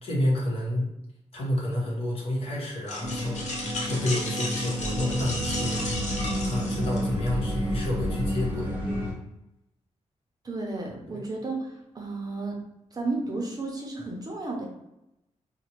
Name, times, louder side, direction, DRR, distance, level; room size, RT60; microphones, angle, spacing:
voice 1, 0.0-0.9 1.3-5.8 6.4-8.7 11.1-11.2, left 1 dB, 50° left, -4 dB, 1.1 m, -29 dB
sound 1, 2.9-7.3, left 2 dB, 70° left, 0.8 m, -34 dB
sound 2, 3.0-9.1, equal, 15° right, 1.0 m, -30 dB
voice 2, 10.4-11.6 11.9-12.6 12.9-14.6, right 3 dB, 30° right, 0 dB, 0.6 m, -32 dB
4.0 x 2.1 x 2.9 m, 0.87 s
wide cardioid pair, 160°, 12 cm